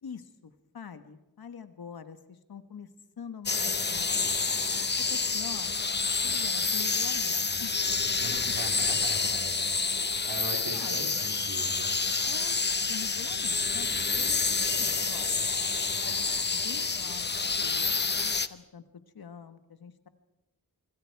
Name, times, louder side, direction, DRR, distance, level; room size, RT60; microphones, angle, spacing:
voice 1, 0.0-2.9 3.2-4.3 4.8-5.7 6.2-7.7 10.0-10.4 10.7-11.2 12.2-12.6 12.9-13.9 14.1-15.4 16.0-20.1, left 7 dB, 85° left, 10 dB, 1.4 m, -45 dB
sound 1, 3.5-18.5, left 4 dB, 30° left, 0.7 m, -28 dB
voice 2, 8.2-9.8 10.3-11.9, right 3 dB, 85° right, 4 dB, 3.0 m, -40 dB
26.0 x 24.5 x 4.7 m, 1.0 s
wide cardioid pair, 100°, 36 cm